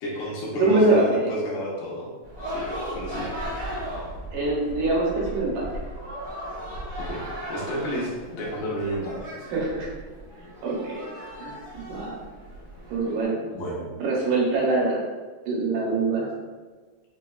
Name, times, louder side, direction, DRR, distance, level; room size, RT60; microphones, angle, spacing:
voice 1, 0.0-2.1 2.5-3.3 7.0-7.2 7.5-9.3 13.5-13.9, equal, 85° left, -5 dB, 2.5 m, -31 dB
voice 2, 0.6-1.4 4.3-5.7 9.5-9.9 10.6-11.0 11.4-12.2 12.9-13.4 14.0-15.0 15.5-16.3, right 2 dB, 85° right, -4 dB, 2.4 m, -24 dB
sound 1, 2.2-13.2, equal, 50° right, 0.7 m, -36 dB
5.8 x 2.2 x 2.2 m, 1.4 s
omnidirectional pair, 3.8 m